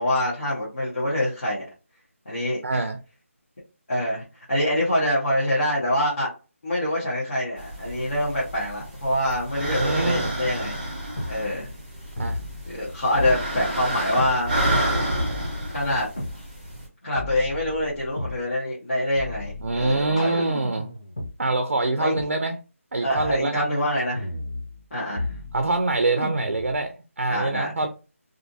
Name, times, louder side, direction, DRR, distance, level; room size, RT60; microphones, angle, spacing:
voice 1, 0.0-1.7 2.3-2.6 3.9-6.3 6.6-10.8 11.3-11.7 12.7-14.5 15.7-16.1 17.0-20.4 22.0-22.1 23.0-24.3 24.9-25.3 27.3-27.7, left 1 dB, 50° left, 1.0 m, -25 dB
voice 2, 2.6-3.0 9.7-10.3 12.2-12.4 19.6-20.9 21.4-22.6 22.9-23.6 25.5-27.9, right 2 dB, 60° right, 0.4 m, -25 dB
sound 1, 7.6-16.8, right 1 dB, 10° right, 1.0 m, -30 dB
sound 2, 11.2-11.4 12.2-12.8 13.2-14.4 15.2-16.4 17.2-18.4 19.2-21.3 22.2-22.3 23.2-23.4 24.2-24.9 25.2-25.8 26.2-26.8, left 1 dB, 25° left, 0.5 m, -33 dB
2.5 x 2.4 x 2.6 m
figure-of-eight pair, 175°, 8 cm